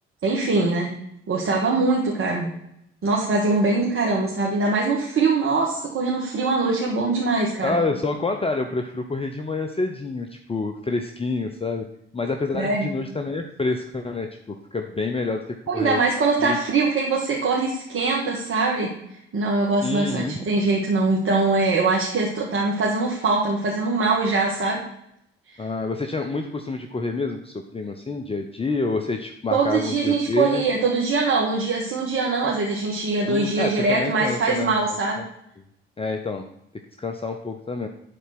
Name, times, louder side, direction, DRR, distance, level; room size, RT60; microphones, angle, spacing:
voice 1, 0.2-0.9 1.3-2.5 3.0-7.8 12.5-12.9 15.7-18.9 19.3-24.8 25.5-25.7 29.5-35.2, right 3 dB, 45° right, -2 dB, 1.8 m, -22 dB
voice 2, 7.6-11.8 12.1-15.4 15.7-16.0 16.4-16.6 19.8-20.4 25.6-30.7 33.3-35.2 36.0-36.4 37.0-37.9, left 3 dB, 20° left, 5 dB, 0.8 m, -28 dB
11.0 x 4.2 x 6.0 m, 0.76 s
figure-of-eight pair, 45°, 31 cm